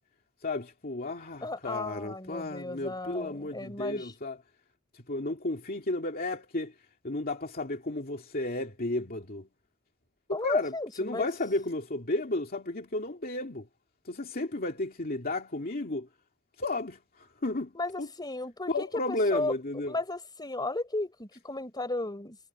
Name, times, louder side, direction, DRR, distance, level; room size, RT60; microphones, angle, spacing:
voice 1, 0.4-4.4 4.9-6.7 7.0-9.5 10.3-10.7 11.0-13.7 14.1-16.1 16.6-17.7 18.0-18.1 18.7-19.9, left 2 dB, 45° left, 2.4 m, -33 dB
voice 2, 1.4-4.1 10.3-11.3 17.7-19.6 19.9-22.4, left 2 dB, 20° left, 4.3 m, -34 dB
head